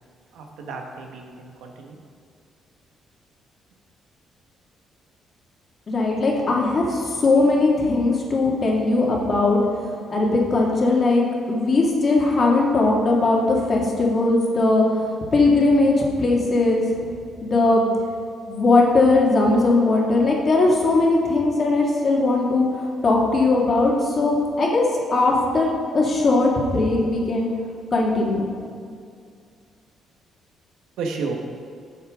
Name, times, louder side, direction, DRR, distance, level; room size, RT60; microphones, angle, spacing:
voice 1, 0.3-2.0 31.0-31.4, right 4 dB, 90° right, 2 dB, 1.2 m, -32 dB
voice 2, 5.9-9.6 10.1-15.0 15.3-16.8 17.4-17.8 18.5-24.8 25.1-27.5 27.9-28.5, left 2 dB, 45° left, -2 dB, 2.1 m, -19 dB
11.5 x 7.1 x 3.7 m, 2.3 s
cardioid pair, 90°, 0 cm